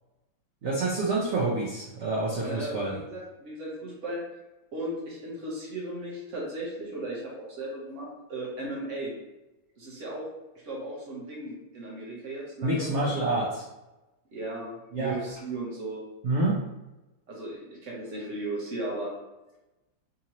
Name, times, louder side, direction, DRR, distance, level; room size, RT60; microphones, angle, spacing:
voice 1, 0.6-3.0 12.6-13.6 14.9-15.1 16.2-16.6, right 2 dB, 90° right, -3 dB, 0.6 m, -27 dB
voice 2, 2.4-4.2 4.7-9.1 9.8-10.3 10.6-13.1 14.3-16.0 17.3-19.1, right 1 dB, 50° right, -3 dB, 1.1 m, -36 dB
3.7 x 2.9 x 2.8 m, 1.0 s
omnidirectional pair, 2.0 m